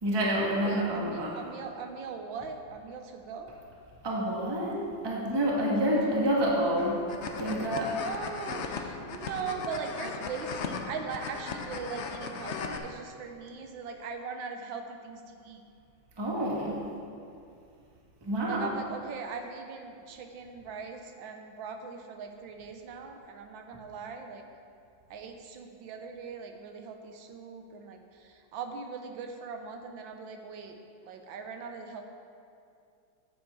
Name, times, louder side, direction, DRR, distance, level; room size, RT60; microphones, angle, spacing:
voice 1, 0.0-1.3 4.0-7.0 7.4-7.9 16.2-16.8 18.2-18.7, equal, 15° right, -3 dB, 1.2 m, -28 dB
voice 2, 0.6-3.5 5.9-6.2 8.0-15.6 18.4-24.4 25.1-30.8 31.0-32.0, right 5 dB, 80° right, 4 dB, 1.6 m, -40 dB
sound 1, 6.8-12.8, left 5 dB, 75° left, 0.6 m, -37 dB
9.4 x 9.2 x 4.7 m, 2.4 s
omnidirectional pair, 2.1 m